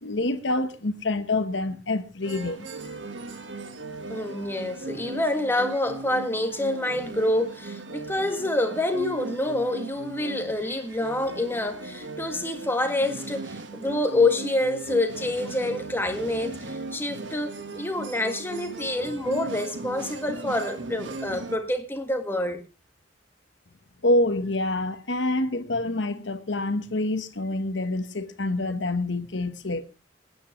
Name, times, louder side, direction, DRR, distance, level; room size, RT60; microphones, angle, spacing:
voice 1, 0.0-2.7 24.0-29.8, left 2 dB, 75° left, 1.2 m, -26 dB
sound 1, 2.2-21.6, right 3 dB, 80° right, 1.6 m, -38 dB
voice 2, 4.1-22.6, left 1 dB, 10° left, 1.6 m, -27 dB
25.0 x 9.6 x 3.2 m
head